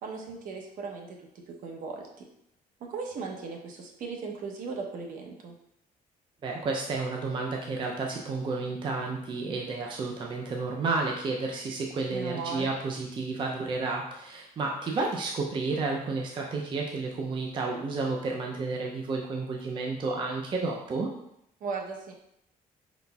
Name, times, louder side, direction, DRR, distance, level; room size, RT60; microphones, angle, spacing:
voice 1, 0.0-2.3 2.8-5.5 12.1-12.7 21.6-22.1, right 4 dB, 65° right, 1 dB, 0.8 m, -37 dB
voice 2, 6.4-21.1, right 3 dB, 30° right, 0 dB, 0.5 m, -31 dB
5.1 x 4.0 x 2.3 m, 0.76 s
cardioid pair, 155°, 15 cm